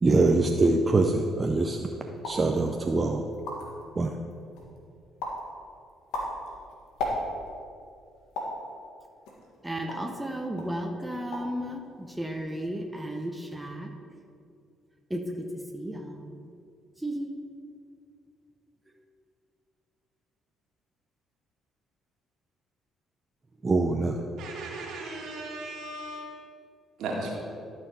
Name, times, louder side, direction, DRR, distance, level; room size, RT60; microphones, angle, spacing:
voice 1, 0.0-1.9 2.2-3.3 4.0-4.1 23.6-24.2, right 3 dB, 30° right, 3 dB, 0.6 m, -23 dB
sound 1, 2.2-2.5 3.0-3.1 3.3-3.8 4.3-4.8 5.2-5.5 5.9-7.6 8.3-8.6 9.3-10.2 10.6-10.8 11.1-11.6 11.8-12.3, left 1 dB, 75° left, 1.7 m, -35 dB
voice 2, 9.6-13.9 15.1-16.4 17.0-17.3, equal, 10° right, 3 dB, 1.0 m, -34 dB
voice 3, 24.4-26.2 27.0-27.3, right 2 dB, 70° right, -1 dB, 2.0 m, -36 dB
12.0 x 4.6 x 5.5 m, 2.4 s
hypercardioid pair, 55°, 0 cm